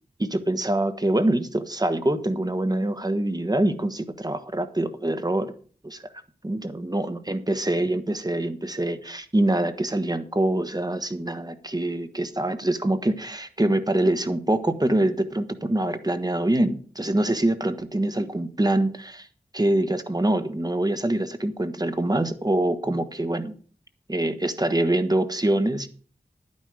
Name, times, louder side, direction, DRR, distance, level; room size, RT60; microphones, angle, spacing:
voice 1, 0.2-5.5 5.8-6.0 6.4-19.3 19.5-23.5 24.1-25.9, right 1 dB, 25° right, 10 dB, 1.4 m, -25 dB
11.0 x 9.8 x 4.9 m, 0.43 s
wide cardioid pair, 60°, 16 cm